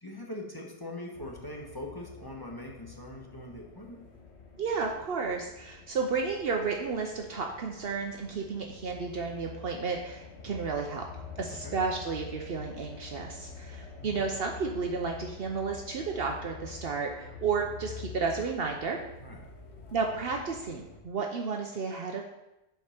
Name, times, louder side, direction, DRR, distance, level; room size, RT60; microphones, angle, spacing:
voice 1, 0.0-4.0 11.6-11.7 14.0-14.3 19.2-19.4, left 1 dB, 20° left, -1 dB, 1.1 m, -42 dB
sound 1, 1.1-21.0, left 5 dB, 85° left, 1.4 m, -47 dB
voice 2, 4.6-11.0 11.4-19.0 19.9-22.2, right 5 dB, 65° right, 1 dB, 0.9 m, -32 dB
7.6 x 4.7 x 5.8 m, 0.92 s
omnidirectional pair, 1.1 m